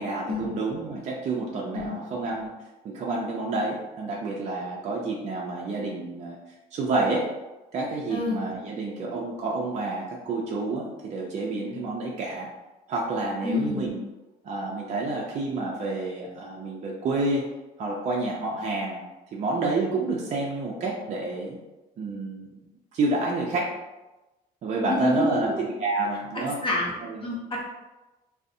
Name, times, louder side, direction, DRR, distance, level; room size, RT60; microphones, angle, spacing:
voice 1, 0.0-2.6 2.8-6.4 6.7-7.3 7.7-12.5 12.9-14.0 14.4-17.5 17.8-21.6 22.0-22.6 22.9-23.8 24.6-26.6 27.0-27.3, right 3 dB, 45° right, -2 dB, 0.4 m, -29 dB
voice 2, 8.1-8.4 13.4-13.8 24.8-25.7 26.6-26.9 27.2-27.6, left 2 dB, 30° left, -3 dB, 0.7 m, -28 dB
2.4 x 2.0 x 2.6 m, 1.1 s
cardioid pair, 110°, 17 cm